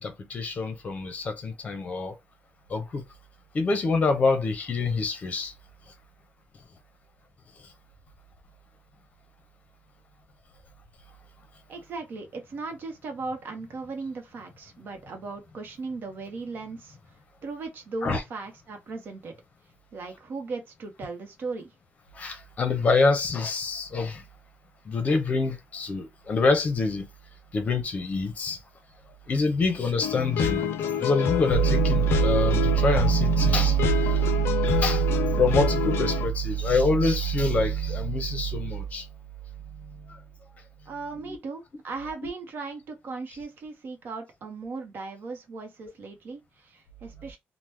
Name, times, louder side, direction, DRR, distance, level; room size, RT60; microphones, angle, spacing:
voice 1, 0.0-2.1 2.7-3.0 3.5-5.5 5.9-6.0 7.6-7.7 18.0-18.2 22.1-24.2 24.8-27.1 27.5-28.6 29.3-30.7 31.0-39.1 39.7-40.3 41.1-41.4 42.2-42.3 43.3-43.4, equal, 35° left, 0.7 m, -25 dB
voice 2, 11.7-17.0 17.4-19.3 19.9-21.7 40.9-47.4, right 4 dB, 50° right, 0.9 m, -37 dB
sound 1, 30.0-36.3, left 8 dB, 65° left, 0.4 m, -27 dB
2.9 x 2.1 x 3.4 m
wide cardioid pair, 170°, 4 cm